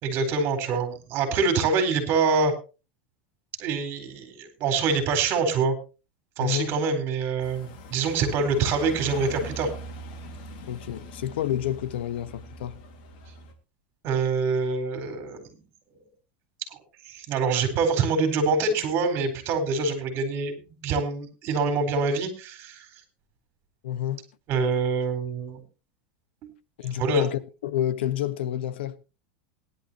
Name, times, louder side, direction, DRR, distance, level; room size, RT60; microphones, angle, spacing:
voice 1, 0.0-2.5 3.6-5.7 6.4-9.7 14.0-15.6 16.7-16.8 17.0-22.9 24.5-25.6 26.4-26.5 27.0-27.2, right 4 dB, 40° right, 4.2 m, -25 dB
voice 2, 6.4-6.7 10.7-12.7 23.8-24.2 26.8-29.0, left 12 dB, 85° left, 1.1 m, -29 dB
sound 1, 7.4-13.5, equal, 60° left, 3.1 m, -41 dB
18.5 x 11.5 x 2.9 m
supercardioid pair, 140°, 6 cm